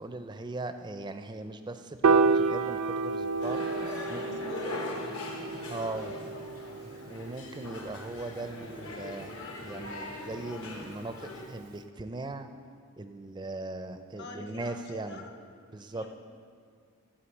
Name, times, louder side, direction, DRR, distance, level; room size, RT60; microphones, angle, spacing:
voice 1, 0.0-3.6 4.1-4.2 5.7-6.2 7.1-12.5 13.0-15.2 15.7-16.0, right 2 dB, 20° right, 9 dB, 0.4 m, -39 dB
Piano, 2.0-8.3, right 4 dB, 85° right, 0.4 m, -29 dB
sound 1, 3.4-11.5, left 2 dB, 75° left, 1.3 m, -41 dB
voice 2, 3.7-5.3 5.7-6.9 14.2-15.3 15.8-16.2, left 2 dB, 55° left, 3 dB, 1.0 m, -47 dB
11.5 x 4.8 x 7.2 m, 2.2 s
head